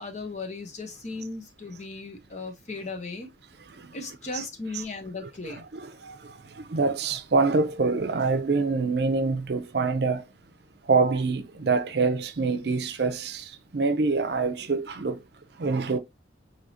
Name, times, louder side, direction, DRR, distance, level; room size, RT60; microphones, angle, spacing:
voice 1, 0.0-3.3 3.9-5.6, left 3 dB, 40° left, 0.9 m, -36 dB
voice 2, 5.7-10.2 10.8-15.2 15.6-16.0, right 4 dB, 60° right, 0.6 m, -25 dB
4.8 x 2.9 x 2.7 m
head